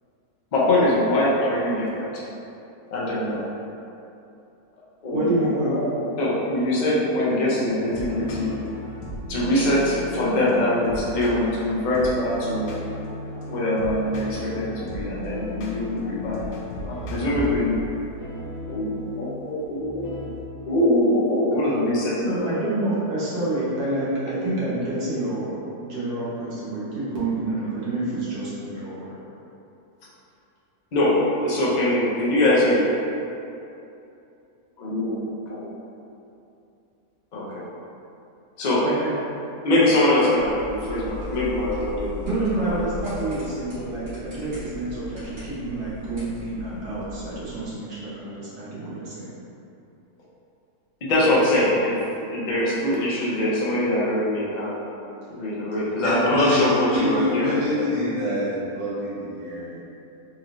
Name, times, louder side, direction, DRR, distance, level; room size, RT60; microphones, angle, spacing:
voice 1, 0.5-2.2 2.9-3.4 5.0-5.9 6.2-8.6 9.3-12.7 13.5-16.4 16.8-17.8 18.7-20.1 20.6-22.5 30.9-32.9 34.8-35.2 35.5-35.7 37.3-37.7 38.6-38.8 39.6-42.2 42.6-42.7 51.0-52.0 52.3-54.9 55.3-57.9, left 1 dB, 80° left, -6 dB, 0.4 m, -23 dB
voice 2, 5.1-5.8 22.2-29.2 38.8-39.1 42.3-49.3, right 2 dB, 85° right, -9 dB, 1.6 m, -28 dB
sound 1, 7.6-20.4, left 2 dB, 65° left, 0.9 m, -35 dB
sound 2, 40.3-47.7, left 2 dB, 65° right, 2.0 m, -38 dB
voice 3, 56.0-59.8, left 1 dB, 35° right, -8 dB, 0.5 m, -26 dB
4.1 x 2.5 x 3.0 m, 2.8 s
omnidirectional pair, 1.7 m